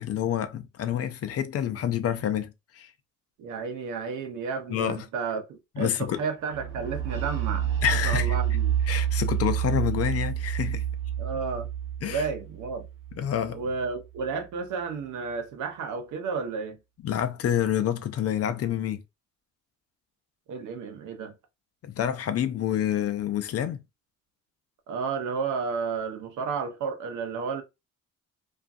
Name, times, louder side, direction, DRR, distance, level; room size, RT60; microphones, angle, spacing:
voice 1, 0.0-2.9 4.7-5.1 5.8-6.2 7.8-8.4 8.9-10.8 12.0-12.3 13.2-13.6 17.0-19.0 21.8-23.8, left 10 dB, 55° left, 0.5 m, -28 dB
voice 2, 3.4-7.7 8.0-8.7 11.2-11.7 12.0-12.9 13.5-16.8 20.5-21.3 24.9-27.6, right 5 dB, 75° right, 0.8 m, -32 dB
sound 1, 6.5-14.2, right 10 dB, 40° right, 1.1 m, -29 dB
2.5 x 2.3 x 2.5 m
cardioid pair, 90°, 30 cm